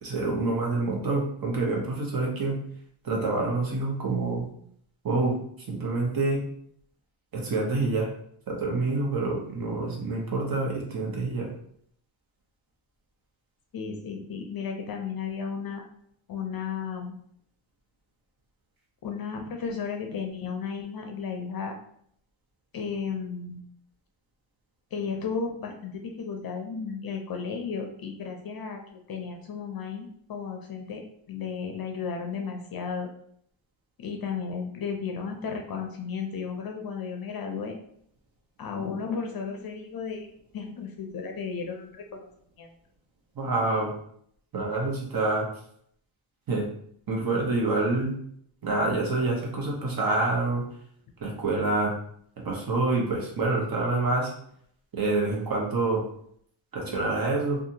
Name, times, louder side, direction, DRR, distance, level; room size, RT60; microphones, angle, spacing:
voice 1, 0.0-2.6 3.0-4.4 5.0-5.4 5.7-6.4 7.3-8.1 8.5-11.5 43.4-43.9 44.5-45.5 46.5-46.6 47.1-48.1 48.6-50.6 51.2-51.9 52.4-54.3 54.9-56.0 56.7-57.6, right 3 dB, 45° right, -2 dB, 1.0 m, -27 dB
voice 2, 13.7-15.8 16.3-17.2 19.0-21.7 22.7-23.6 24.9-31.0 31.3-33.1 34.0-37.8 38.6-40.3 40.5-42.3 42.6-42.7, left 6 dB, 50° left, 3 dB, 0.5 m, -34 dB
2.7 x 2.5 x 2.7 m, 0.67 s
cardioid pair, 90°, 48 cm